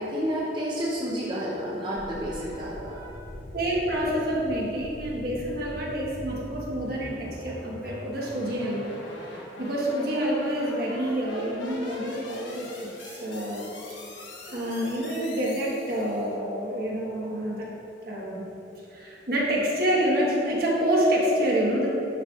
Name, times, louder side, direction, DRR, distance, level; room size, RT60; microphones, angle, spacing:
voice 1, 0.0-3.1, equal, 25° right, -7 dB, 0.8 m, -30 dB
sound 1, 2.0-16.3, left 1 dB, 90° left, 1.1 m, -42 dB
voice 2, 3.5-8.9 9.6-14.0 14.5-17.7 18.0-18.5 18.9-21.9, equal, 55° right, -4 dB, 1.3 m, -27 dB
10.5 x 5.4 x 2.4 m, 2.9 s
head